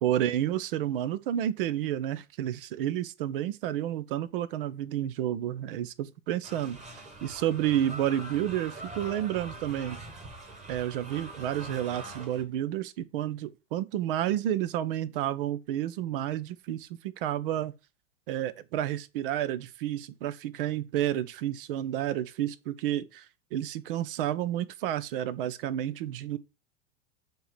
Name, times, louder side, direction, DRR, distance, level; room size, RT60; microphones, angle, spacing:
voice 1, 0.0-6.8 7.2-10.0 10.7-17.7 18.3-23.3 23.5-26.4, right 11 dB, 50° right, 0.7 m, -30 dB
sound 1, 6.4-12.4, right 2 dB, 20° right, 1.7 m, -43 dB
7.8 x 3.0 x 4.9 m
figure-of-eight pair, 90°, 36 cm